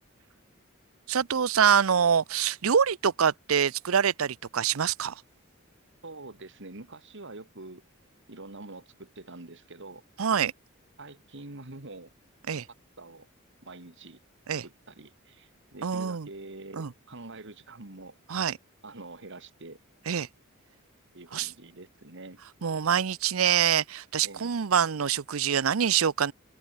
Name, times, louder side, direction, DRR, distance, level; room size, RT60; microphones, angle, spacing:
voice 1, 1.1-5.2 10.2-10.5 12.5-12.7 14.5-14.6 15.8-16.3 16.8-16.9 18.3-18.6 20.1-20.3 21.3-21.5 22.6-26.3, right 7 dB, 80° right, 0.6 m, -25 dB
voice 2, 6.0-7.8 8.3-10.0 11.0-12.1 13.0-13.3 13.6-14.2 14.6-18.2 18.8-19.8 21.1-22.4 24.2-24.5, right 2 dB, 60° right, 2.6 m, -45 dB
open air
head